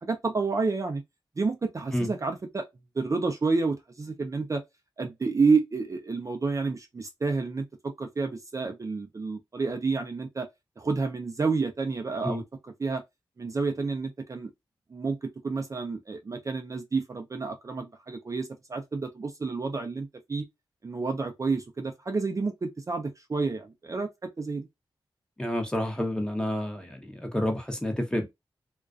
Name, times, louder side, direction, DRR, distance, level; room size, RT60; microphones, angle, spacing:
voice 1, 0.0-1.0 1.4-2.7 3.0-4.6 5.0-10.5 10.8-12.4 12.8-13.0 13.4-14.5 14.9-20.4 20.8-24.7, right 4 dB, 35° right, 0.4 m, -29 dB
voice 2, 25.4-28.3, left 1 dB, 10° left, 0.8 m, -29 dB
2.4 x 2.2 x 2.4 m
cardioid pair, 50°, 9 cm